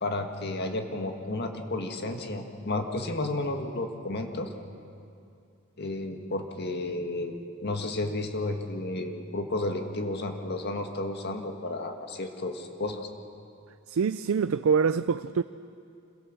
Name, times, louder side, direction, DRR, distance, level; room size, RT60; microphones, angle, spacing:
voice 1, 0.0-4.5 5.8-13.0, left 2 dB, 55° left, 5 dB, 1.7 m, -32 dB
voice 2, 13.9-15.4, right 6 dB, 80° right, 13 dB, 0.4 m, -25 dB
26.5 x 16.5 x 7.4 m, 2.6 s
head